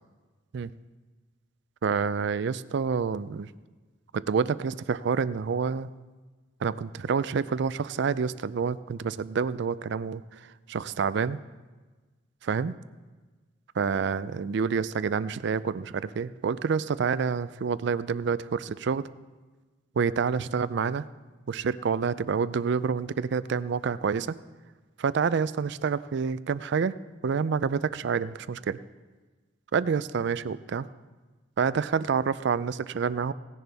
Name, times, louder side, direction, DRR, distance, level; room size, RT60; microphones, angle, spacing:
voice 1, 1.8-3.5 4.1-5.9 6.6-10.2 10.7-11.4 12.4-12.7 13.8-19.1 20.0-21.0 21.5-24.3 25.0-26.9 27.2-28.8 29.7-30.9 31.6-33.3, right 6 dB, 60° right, 16 dB, 0.4 m, -28 dB
17.5 x 10.5 x 3.5 m, 1.3 s
head